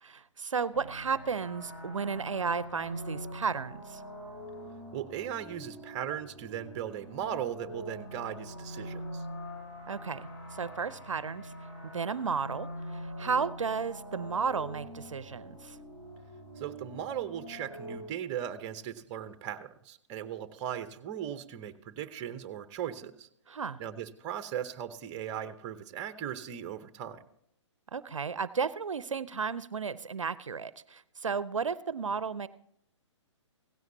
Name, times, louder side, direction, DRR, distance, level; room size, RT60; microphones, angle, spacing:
voice 1, 0.0-4.0 9.9-11.5 11.8-15.8 23.5-23.8 27.9-32.5, right 5 dB, 80° right, 17 dB, 0.6 m, -33 dB
sound 1, 0.7-18.0, equal, 55° left, 6.6 m, -44 dB
voice 2, 4.9-9.2 16.6-23.3 23.8-27.2, right 10 dB, 25° right, 11 dB, 0.8 m, -38 dB
16.5 x 15.5 x 2.8 m, 0.71 s
figure-of-eight pair, 130°, 16 cm